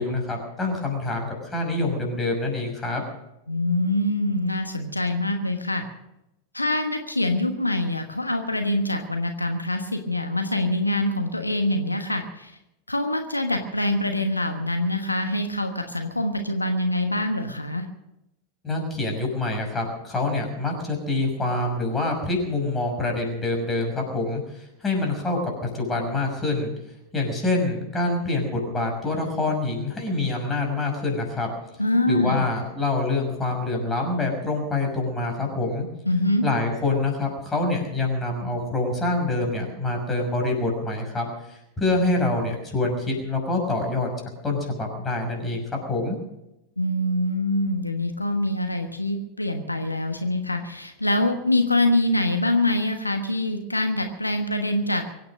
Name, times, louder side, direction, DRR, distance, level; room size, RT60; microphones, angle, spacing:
voice 1, 0.0-3.0 18.6-26.7 27.1-31.5 32.1-35.9 36.4-44.1 44.4-46.2, left 2 dB, 15° left, 1 dB, 6.1 m, -26 dB
voice 2, 3.5-5.8 6.5-12.6 12.9-17.9 31.8-32.4 36.0-36.4 46.8-55.0, left 1 dB, 85° left, 6 dB, 1.2 m, -24 dB
23.5 x 9.4 x 6.4 m, 0.88 s
figure-of-eight pair, 90°, 0 cm